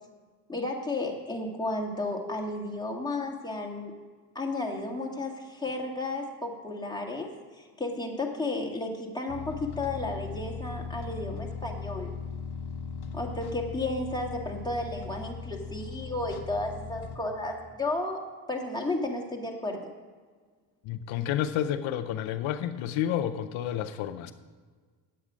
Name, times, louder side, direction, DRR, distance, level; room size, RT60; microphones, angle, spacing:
voice 1, 0.5-3.9 4.3-12.1 13.1-18.2 18.5-19.9, left 2 dB, 10° left, 0 dB, 2.1 m, -33 dB
sound 1, 9.3-17.2, left 5 dB, 55° left, 1.1 m, -38 dB
voice 2, 20.8-24.3, left 10 dB, 85° left, 9 dB, 0.6 m, -30 dB
9.7 x 8.2 x 5.0 m, 1.5 s
supercardioid pair, 60°, 46 cm